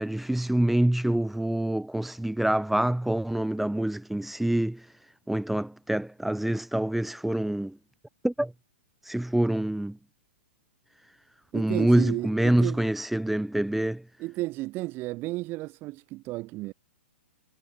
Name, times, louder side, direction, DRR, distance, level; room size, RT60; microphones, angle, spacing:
voice 1, 0.0-4.9 5.3-7.8 8.2-8.5 9.0-10.0 11.5-14.0, right 1 dB, ahead, 0.8 m, -26 dB
voice 2, 11.5-12.8 14.2-16.7, right 19 dB, 30° right, 2.1 m, -33 dB
hypercardioid pair, 120°, 7 cm